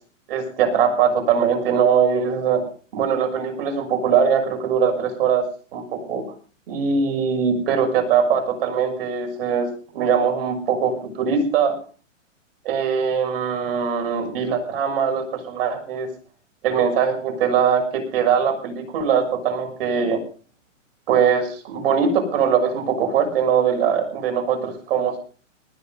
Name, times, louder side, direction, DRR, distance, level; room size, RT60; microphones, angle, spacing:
voice 1, 0.3-2.7 2.9-5.4 5.7-6.2 6.7-9.7 9.9-11.7 12.6-16.1 16.6-20.2 21.1-25.2, right 7 dB, 45° right, 4 dB, 6.5 m, -21 dB
19.5 x 10.5 x 5.5 m, 0.40 s
hypercardioid pair, 160°, 39 cm